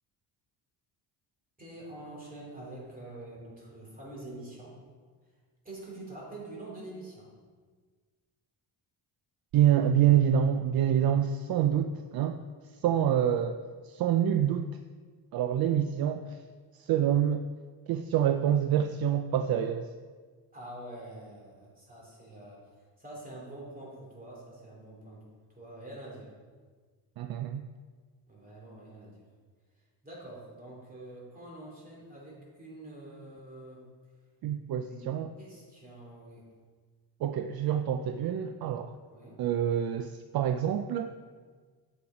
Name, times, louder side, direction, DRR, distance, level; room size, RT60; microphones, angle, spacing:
voice 1, 1.6-4.7 5.6-7.3 12.8-13.0 20.5-25.3 25.5-26.3 28.3-29.2 29.7-33.8 34.9-35.1 35.4-36.4 39.1-39.4, right 1 dB, 20° right, -4 dB, 2.9 m, -46 dB
voice 2, 9.5-12.4 12.8-13.6 13.8-14.7 15.3-16.4 16.7-17.4 17.9-19.9 27.2-27.7 34.4-35.3 37.2-39.0 39.4-41.1, right 10 dB, 60° right, 9 dB, 0.5 m, -26 dB
8.1 x 6.9 x 4.9 m, 1.5 s
cardioid pair, 130°, 41 cm